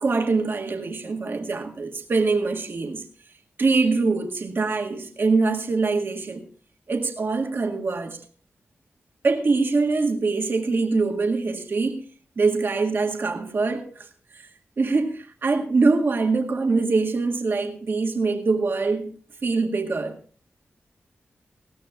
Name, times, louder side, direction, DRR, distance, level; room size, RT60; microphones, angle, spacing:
voice 1, 0.0-3.0 3.6-6.5 6.9-8.2 9.2-12.0 12.4-14.1 14.3-14.5 14.8-19.1 19.4-20.1, right 3 dB, 55° right, 1.9 m, -23 dB
20.0 x 15.5 x 2.4 m
wide cardioid pair, 95°, 4 cm